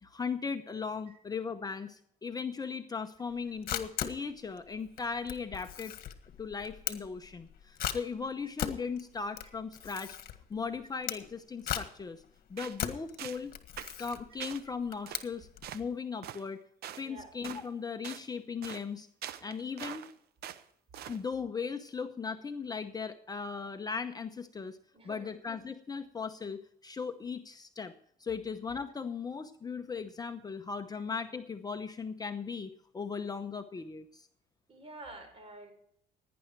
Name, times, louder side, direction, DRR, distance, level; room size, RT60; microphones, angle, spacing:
voice 1, 0.0-5.9 6.4-10.2 10.5-12.2 12.5-13.5 14.0-15.5 15.7-16.6 17.0-19.1 19.4-20.0 21.1-24.8 25.0-27.9 28.2-34.3, left 5 dB, 20° left, 7 dB, 0.8 m, -38 dB
Camera, 3.3-15.7, left 10 dB, 60° left, 1.7 m, -39 dB
sound 1, 12.6-12.8 13.2-13.4 13.8-14.0 14.4-14.6 15.1-15.2 15.6-15.8 16.2-16.4 16.8-17.0 17.4-17.7 18.0-18.2 18.6-18.8 19.2-20.1 20.4-20.6 20.9-21.2, right 11 dB, 70° right, 0.9 m, -43 dB
voice 2, 24.9-25.3 34.7-35.7, right 2 dB, 35° right, 6 dB, 4.9 m, -48 dB
17.5 x 10.5 x 4.6 m, 0.68 s
cardioid pair, 110°, 17 cm